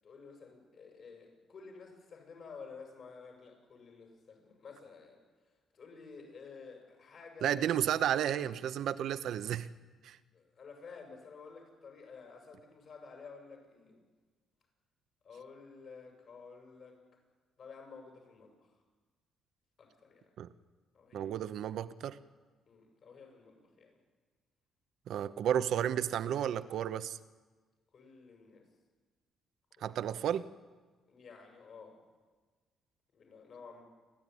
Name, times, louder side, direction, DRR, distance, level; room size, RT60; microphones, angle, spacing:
voice 1, 0.0-5.2 5.7-7.6 10.3-14.0 15.2-17.0 17.6-18.8 19.8-20.3 20.9-21.4 22.7-24.0 27.9-28.6 29.8-30.0 31.1-32.0 33.1-33.8, left 5 dB, 55° left, 3 dB, 7.4 m, -52 dB
voice 2, 7.4-9.7 10.0-10.2 20.4-20.5 21.1-22.2 25.1-27.2 29.8-30.5, right 10 dB, 75° right, 13 dB, 0.9 m, -32 dB
30.0 x 12.5 x 9.8 m, 1.4 s
cardioid pair, 90°, 0 cm